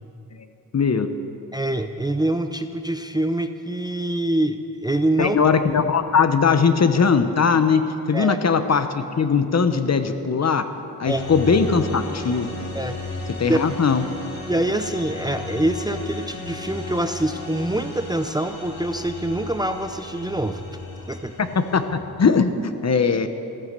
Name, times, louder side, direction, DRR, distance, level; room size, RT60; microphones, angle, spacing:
voice 1, 0.7-1.1 5.2-7.8 8.1-10.6 11.0-12.5 13.4-14.0 21.4-21.8 22.2-23.3, left 5 dB, 45° left, 9 dB, 0.9 m, -19 dB
voice 2, 1.5-5.4 8.1-8.4 11.0-11.3 12.7-13.0 13.5-13.6 14.5-20.8 21.1-21.3, right 1 dB, 10° right, 8 dB, 0.6 m, -25 dB
sound 1, 11.1-21.9, left 2 dB, 65° left, 3.6 m, -34 dB
15.0 x 14.5 x 6.7 m, 2.8 s
wide cardioid pair, 110°, 37 cm